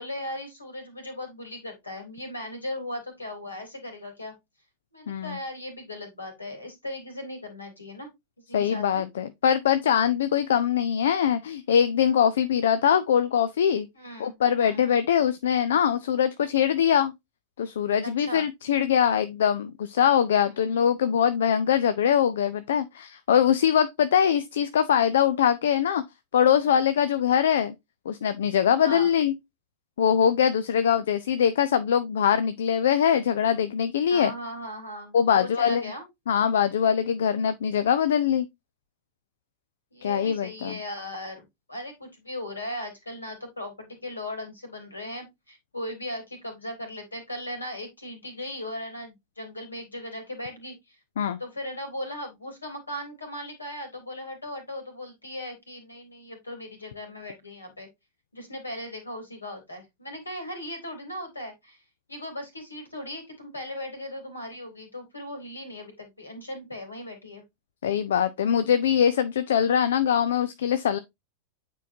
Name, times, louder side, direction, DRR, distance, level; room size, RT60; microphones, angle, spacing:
voice 1, 0.0-4.3 4.9-8.1 8.5-9.0 13.9-14.9 18.0-18.4 28.8-29.1 34.1-36.1 39.9-51.0 51.4-57.9 58.3-61.8 62.1-67.4, left 1 dB, 80° left, 3.0 m, -38 dB
voice 2, 5.1-5.4 8.5-13.9 14.2-17.1 17.6-26.0 26.3-27.7 28.1-29.3 30.0-34.3 35.1-35.8 36.3-38.5 40.0-40.8 51.2-51.4 67.8-71.0, left 8 dB, 60° left, 0.5 m, -22 dB
9.0 x 4.6 x 2.7 m
figure-of-eight pair, 90°, 0 cm